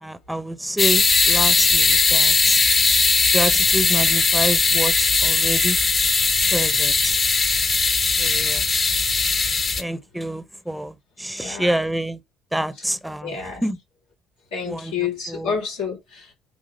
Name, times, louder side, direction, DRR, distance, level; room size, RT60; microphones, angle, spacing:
voice 1, 0.0-2.6 3.3-5.8 6.5-7.2 8.2-8.7 9.8-12.2 12.5-13.4 13.6-13.8 14.6-14.9 15.3-15.5, right 1 dB, 5° right, 1.1 m, -27 dB
sound 1, 0.8-9.8, left 4 dB, 35° left, 1.5 m, -19 dB
voice 2, 11.3-11.8 12.7-12.8 13.2-13.6 14.5-16.3, left 6 dB, 75° left, 4.7 m, -29 dB
9.1 x 3.5 x 5.2 m
figure-of-eight pair, 50°, 0 cm